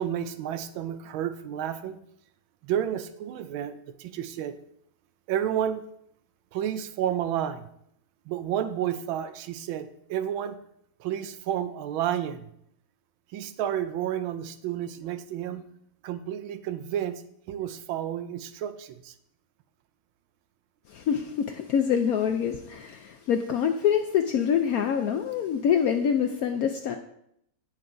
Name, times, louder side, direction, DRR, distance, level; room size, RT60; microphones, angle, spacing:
voice 1, 0.0-2.0 2.6-4.5 5.3-5.8 6.5-7.7 8.3-10.6 11.0-12.5 13.3-15.7 16.0-17.2 17.5-19.1, right 10 dB, 90° right, 10 dB, 1.4 m, -31 dB
voice 2, 20.9-27.0, left 8 dB, 80° left, 6 dB, 0.8 m, -25 dB
17.0 x 5.8 x 2.6 m, 0.73 s
omnidirectional pair, 2.2 m